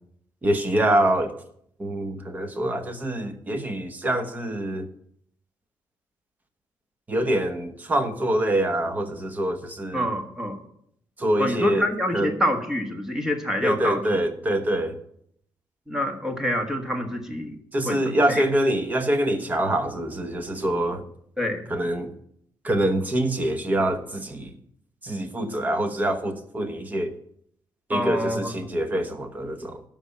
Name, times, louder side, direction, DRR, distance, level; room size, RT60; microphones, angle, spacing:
voice 1, 0.4-1.4 1.8-4.9 7.1-10.1 11.2-11.9 12.1-12.3 13.6-15.0 17.7-21.0 21.7-22.1 22.6-24.5 25.0-27.1 27.9-29.8, right 1 dB, 20° right, 8 dB, 1.1 m, -25 dB
voice 2, 9.9-10.6 11.4-14.0 15.9-17.6 17.8-18.4 21.4-21.7 27.9-28.6 28.9-29.0, equal, 5° right, 4 dB, 1.4 m, -27 dB
12.5 x 5.3 x 8.7 m, 0.70 s
wide cardioid pair, 165°, 8 cm